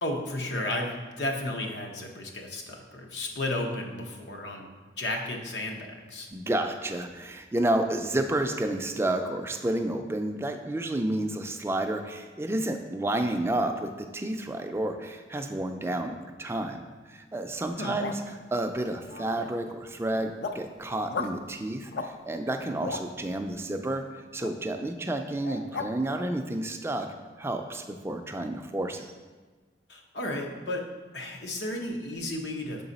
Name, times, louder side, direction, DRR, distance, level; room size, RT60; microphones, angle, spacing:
voice 1, 0.0-4.7 5.0-6.3 17.8-18.0 29.9-30.8 31.1-32.8, left 1 dB, 85° left, 2 dB, 0.8 m, -33 dB
voice 2, 6.3-18.2 18.5-24.0 24.3-27.1 27.4-29.1, right 1 dB, 15° right, 5 dB, 0.3 m, -30 dB
sound 1, 17.7-18.3 19.0-19.7 20.1-20.7 21.1-21.4 21.9-22.1 22.5-23.1 24.4-24.5 25.4-25.9, left 4 dB, 65° left, 0.4 m, -36 dB
6.6 x 3.9 x 4.0 m, 1.4 s
head